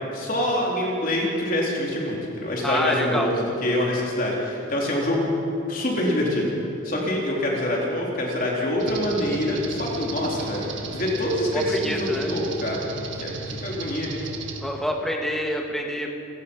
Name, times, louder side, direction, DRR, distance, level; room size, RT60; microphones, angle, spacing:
voice 1, 0.1-5.3 5.7-6.5 6.8-12.9 13.2-14.1, left 1 dB, 40° left, -3 dB, 3.9 m, -25 dB
voice 2, 2.6-3.3 11.5-12.3 14.6-16.1, equal, ahead, 1 dB, 1.8 m, -27 dB
sound 1, 8.8-14.6, right 3 dB, 60° right, 2.1 m, -35 dB
29.5 x 16.0 x 5.6 m, 2.8 s
head